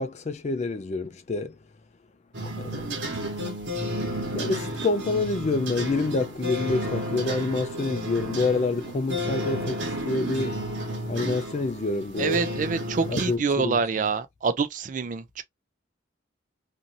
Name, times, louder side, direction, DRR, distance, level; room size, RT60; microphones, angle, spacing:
voice 1, 0.0-1.6 2.6-3.1 4.3-10.6 11.1-12.5 13.1-13.8, left 3 dB, 40° left, 0.4 m, -27 dB
sound 1, 2.3-13.4, equal, 85° right, 1.1 m, -32 dB
voice 2, 12.2-15.4, right 4 dB, 45° right, 0.4 m, -26 dB
2.6 x 2.6 x 2.6 m
head